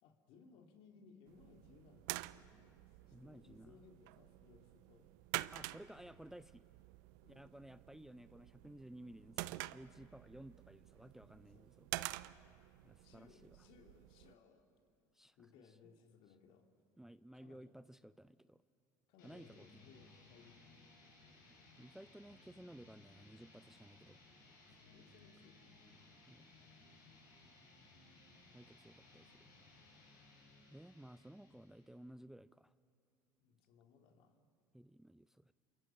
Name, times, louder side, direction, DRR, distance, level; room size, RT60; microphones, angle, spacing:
voice 1, 0.0-5.1 7.2-7.6 11.5-11.7 13.0-14.7 15.4-16.7 17.3-17.7 19.1-20.7 24.7-25.9 29.0-29.7 33.4-34.4, left 5 dB, 65° left, 4 dB, 2.4 m, -64 dB
sound 1, 1.3-14.3, right 19 dB, 75° right, 0.5 m, -48 dB
voice 2, 3.1-3.8 5.5-6.6 7.3-11.9 12.8-13.6 15.1-15.8 17.0-18.6 19.2-19.8 21.8-24.2 26.3-26.5 28.5-29.5 30.7-32.7 34.7-35.5, right 1 dB, 5° right, 15 dB, 0.4 m, -56 dB
sound 2, 19.2-32.0, left 2 dB, 85° left, 6.3 m, -63 dB
27.5 x 23.0 x 5.6 m, 2.7 s
hypercardioid pair, 75°, 10 cm